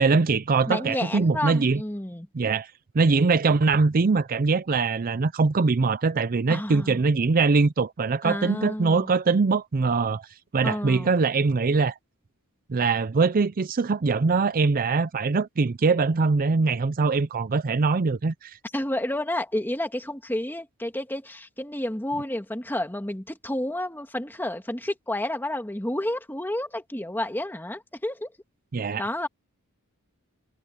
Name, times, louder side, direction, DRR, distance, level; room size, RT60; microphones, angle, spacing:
voice 1, 0.0-1.8 2.3-10.3 10.5-11.9 12.7-18.6 28.7-29.0, right 4 dB, 40° right, 0.5 m, -22 dB
voice 2, 0.7-2.3 6.5-7.0 8.2-9.1 10.6-11.1 18.7-28.3 29.0-29.3, left 1 dB, 10° left, 1.8 m, -30 dB
head